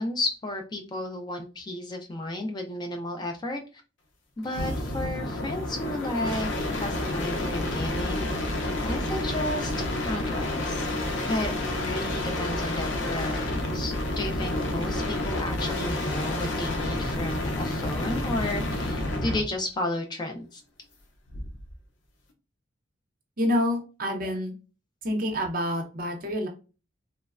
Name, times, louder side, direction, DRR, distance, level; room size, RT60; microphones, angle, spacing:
voice 1, 0.0-3.8 4.4-8.3 8.8-9.7 10.1-10.9 11.3-20.6, left 1 dB, 25° left, 4 dB, 0.3 m, -33 dB
sound 1, 4.4-19.5 21.3-21.7, left 1 dB, 80° left, 0.5 m, -29 dB
voice 2, 23.4-24.5 25.0-26.5, left 1 dB, 50° right, 2 dB, 0.6 m, -27 dB
3.1 x 2.0 x 2.3 m, 0.32 s
head